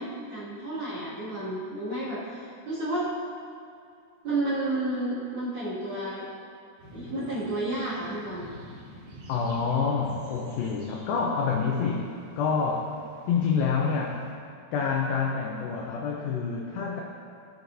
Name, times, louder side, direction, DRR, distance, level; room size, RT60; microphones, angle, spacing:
voice 1, 0.0-2.4 2.7-3.1 4.2-6.2 6.9-8.5, right 1 dB, 40° right, -10 dB, 2.4 m, -31 dB
sound 1, 6.8-14.3, right 1 dB, 60° right, 3.0 m, -49 dB
voice 2, 9.3-13.0 13.3-14.2 14.7-17.0, left 5 dB, 85° left, -1 dB, 2.1 m, -27 dB
17.0 x 6.4 x 2.7 m, 2.5 s
omnidirectional pair, 5.0 m